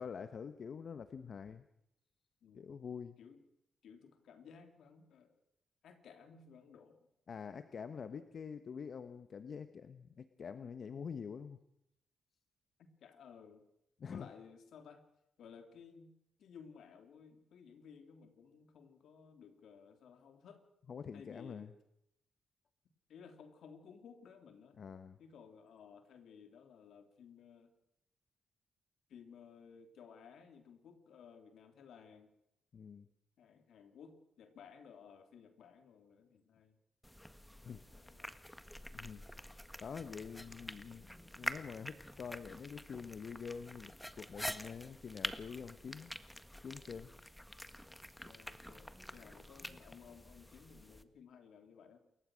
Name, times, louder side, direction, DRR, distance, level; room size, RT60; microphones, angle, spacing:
voice 1, 0.0-1.6 2.5-3.2 7.3-11.6 14.0-14.3 20.9-21.7 24.8-25.2 32.7-33.1 37.6-37.8 38.9-39.2 39.8-46.1 46.6-47.1, left 6 dB, 60° left, 11 dB, 1.1 m, -46 dB
voice 2, 2.4-2.8 3.2-3.4 3.8-5.4 5.8-7.1 12.8-13.6 14.1-15.0 15.4-16.1 16.4-20.6 21.1-21.7 23.1-24.8 25.2-27.7 29.1-32.3 33.4-36.8 37.8-38.4 48.2-52.0, left 6 dB, 80° left, 7 dB, 3.2 m, -57 dB
sound 1, 37.0-51.0, equal, 5° left, 1.6 m, -47 dB
28.0 x 15.0 x 6.4 m, 0.82 s
cardioid pair, 65°, 0 cm